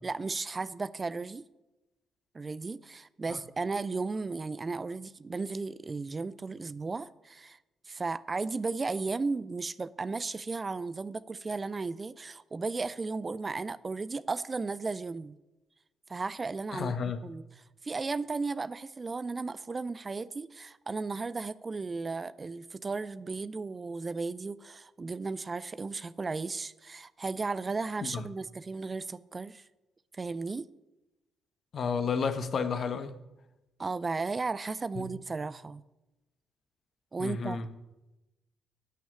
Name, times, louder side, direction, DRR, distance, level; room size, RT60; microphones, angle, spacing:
voice 1, 0.0-1.4 2.3-7.6 7.9-15.4 16.1-17.0 17.2-29.6 30.1-30.7 33.8-35.8 37.1-37.6, right 4 dB, 30° right, 0.5 m, -35 dB
voice 2, 16.7-17.2 28.0-28.2 31.7-33.1 35.0-35.1 37.2-37.6, left 5 dB, 50° left, 1.2 m, -31 dB
12.5 x 6.2 x 8.7 m
figure-of-eight pair, 40°, 0 cm